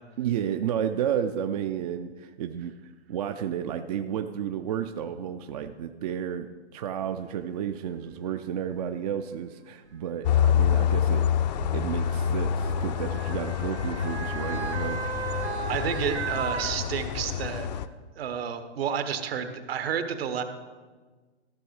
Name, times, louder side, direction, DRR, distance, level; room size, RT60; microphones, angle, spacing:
voice 1, 0.2-2.7 3.1-11.3 11.7-15.0, right 9 dB, 40° right, 8 dB, 0.4 m, -32 dB
Motor vehicle (road) / Siren, 7.5-7.6 8.6-8.8 9.9-17.5 17.9-18.0, right 5 dB, 85° right, 1.5 m, -37 dB
sound 1, 10.2-17.9, left 9 dB, 40° left, 0.5 m, -27 dB
voice 2, 15.7-17.7 18.2-20.4, right 8 dB, 60° right, 9 dB, 1.2 m, -30 dB
14.5 x 6.2 x 4.7 m, 1.4 s
hypercardioid pair, 125°, 33 cm